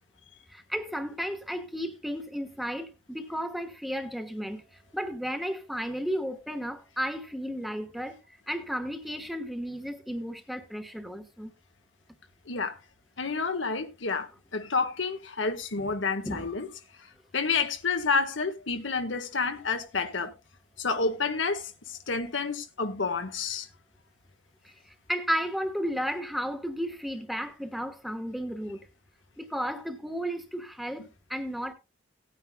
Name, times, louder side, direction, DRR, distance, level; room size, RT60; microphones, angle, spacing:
voice 1, 0.5-11.5 16.2-16.5 24.6-28.9 29.4-31.7, equal, ahead, 1.1 m, -33 dB
voice 2, 12.5-12.8 13.2-16.7 17.0-20.3 20.8-23.7, left 4 dB, 90° left, 1.4 m, -29 dB
18.0 x 9.2 x 2.2 m
head